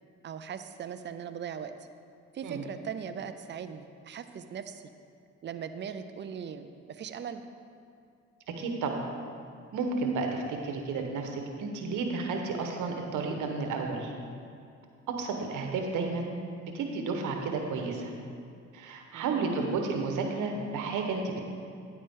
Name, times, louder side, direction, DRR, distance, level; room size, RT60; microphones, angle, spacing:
voice 1, 0.2-1.7 2.3-4.9 5.4-7.4 19.1-19.8, right 7 dB, 40° right, 9 dB, 0.5 m, -39 dB
voice 2, 8.6-9.1 9.7-14.1 15.2-16.3 16.6-18.1 18.7-21.4, right 4 dB, 85° right, 3 dB, 1.2 m, -32 dB
10.0 x 8.4 x 3.7 m, 2.3 s
cardioid pair, 90°, 30 cm